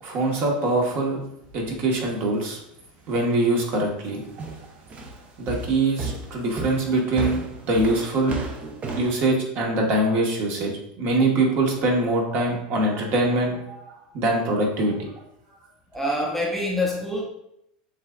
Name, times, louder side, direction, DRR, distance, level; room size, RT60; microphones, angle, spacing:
voice 1, 0.0-1.2 1.5-2.6 3.1-4.2 5.4-7.4 7.7-8.4 9.0-10.7 11.0-13.8 14.1-14.9, right 2 dB, 50° right, 0 dB, 1.2 m, -23 dB
sound 1, 4.4-9.2, right 3 dB, 30° right, 0.6 m, -33 dB
voice 2, 15.9-17.2, left 1 dB, 5° left, -1 dB, 0.7 m, -25 dB
7.2 x 2.4 x 2.3 m, 0.79 s
supercardioid pair, 110°, 5 cm